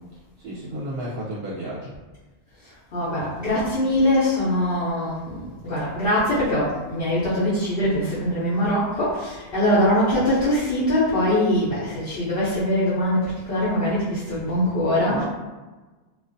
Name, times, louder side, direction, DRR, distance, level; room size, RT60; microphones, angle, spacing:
voice 1, 0.4-1.9 15.1-15.2, right 1 dB, 60° right, -7 dB, 0.7 m, -32 dB
voice 2, 2.6-15.2, left 1 dB, 60° left, -10 dB, 0.9 m, -22 dB
2.5 x 2.2 x 2.5 m, 1.2 s
omnidirectional pair, 1.2 m